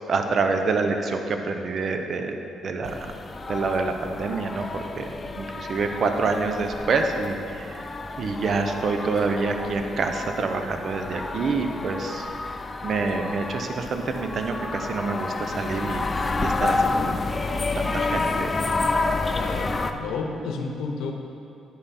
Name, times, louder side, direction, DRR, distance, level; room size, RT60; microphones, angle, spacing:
voice 1, 0.1-2.4 2.6-3.1 3.5-5.1 5.4-7.7 8.2-12.3 12.8-16.1 16.4-17.2 17.5-18.6, right 4 dB, 55° right, 5 dB, 0.7 m, -27 dB
sound 1, 2.8-19.9, left 3 dB, 30° left, 0.4 m, -29 dB
voice 2, 19.3-21.1, left 4 dB, 85° left, 3 dB, 0.8 m, -31 dB
9.8 x 5.7 x 4.2 m, 2.7 s
cardioid pair, 90°, 0 cm